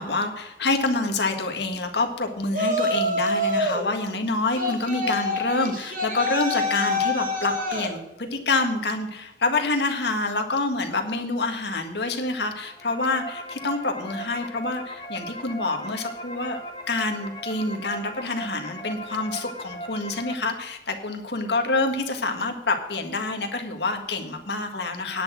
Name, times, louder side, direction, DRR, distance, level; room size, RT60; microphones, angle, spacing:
voice 1, 0.0-16.6 16.9-25.2, left 3 dB, 70° left, 4 dB, 1.7 m, -27 dB
Yell, 2.5-3.9 4.6-7.9, left 1 dB, 50° right, 2.1 m, -26 dB
sound 1, 12.6-20.3, right 1 dB, 25° left, 1.6 m, -38 dB
10.0 x 6.7 x 7.8 m, 0.98 s
head